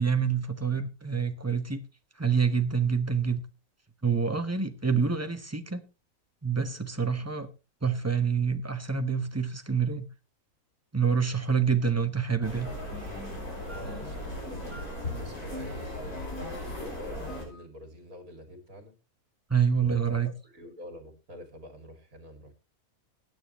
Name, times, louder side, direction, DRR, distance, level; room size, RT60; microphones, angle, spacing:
voice 1, 0.0-1.8 2.2-3.4 4.0-5.8 6.4-7.5 7.8-10.1 10.9-12.7 19.5-20.3, right 6 dB, 10° right, 0.9 m, -27 dB
sound 1, 12.4-17.4, left 1 dB, 85° left, 5.6 m, -37 dB
sound 2, 12.6-17.6, left 2 dB, 15° left, 0.8 m, -47 dB
voice 2, 13.6-14.8 15.1-18.9 19.8-22.5, equal, 65° right, 3.1 m, -46 dB
16.5 x 9.3 x 3.0 m
omnidirectional pair, 1.5 m